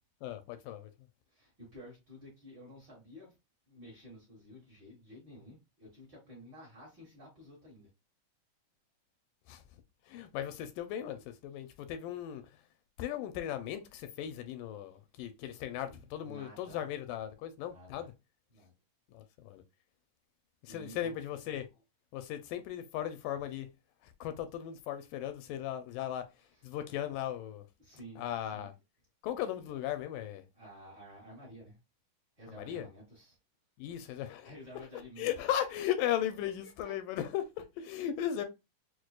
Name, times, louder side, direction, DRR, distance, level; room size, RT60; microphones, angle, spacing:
voice 1, 0.2-0.9 9.5-9.6 10.1-12.4 13.0-18.1 19.1-19.6 20.6-21.7 22.1-23.7 24.0-26.3 26.6-27.7 28.2-28.7 29.2-30.4 32.5-32.9 33.8-34.5 35.2-38.5, left 11 dB, 85° left, 2.1 m, -37 dB
voice 2, 1.3-3.4 3.7-7.9 15.9-16.9 17.6-18.1 18.5-18.7 20.7-21.1 26.4-26.6 27.8-28.7 30.5-31.8 32.4-33.4 34.4-35.3 36.6-36.9, equal, 45° right, 1.5 m, -52 dB
6.0 x 2.4 x 2.3 m
omnidirectional pair, 3.9 m